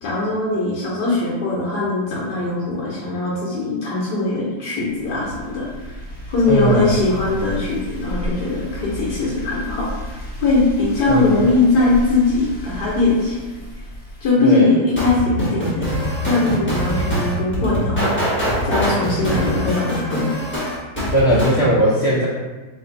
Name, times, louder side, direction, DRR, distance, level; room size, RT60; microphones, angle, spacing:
voice 1, 0.0-5.9 6.3-10.1 10.4-13.4 14.2-15.9 16.3-18.2 18.6-20.3, left 2 dB, 65° left, -6 dB, 1.3 m, -20 dB
sound 1, 4.9-14.3, equal, 35° left, 1.1 m, -33 dB
voice 2, 6.5-6.9 11.1-11.4 14.4-14.8 21.1-22.3, equal, 85° left, -7 dB, 0.5 m, -18 dB
sound 2, 15.0-21.6, equal, 10° left, 0.8 m, -23 dB
3.3 x 2.8 x 3.8 m, 1.2 s
omnidirectional pair, 2.1 m